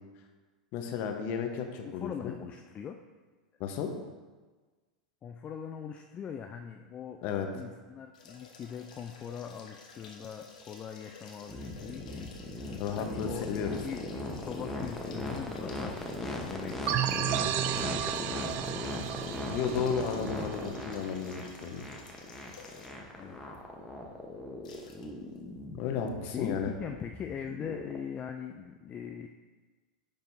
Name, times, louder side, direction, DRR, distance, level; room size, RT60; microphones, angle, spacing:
voice 1, 0.7-2.3 3.6-3.9 7.2-7.5 12.8-13.8 19.5-21.8 25.7-26.7, left 7 dB, 45° left, 4 dB, 1.1 m, -33 dB
voice 2, 1.8-3.0 5.2-7.2 7.5-19.1 23.1-23.4 26.3-29.3, left 8 dB, 30° left, 5 dB, 0.4 m, -42 dB
sound 1, 8.1-23.1 23.5-23.6 24.6-25.1 25.3-25.4, left 4 dB, 70° left, 1.1 m, -51 dB
sound 2, 11.5-28.0, left 1 dB, 5° left, 1.0 m, -39 dB
sound 3, 16.9-21.3, right 11 dB, 40° right, 0.4 m, -33 dB
10.0 x 5.4 x 2.7 m, 1.3 s
hypercardioid pair, 95°, 4 cm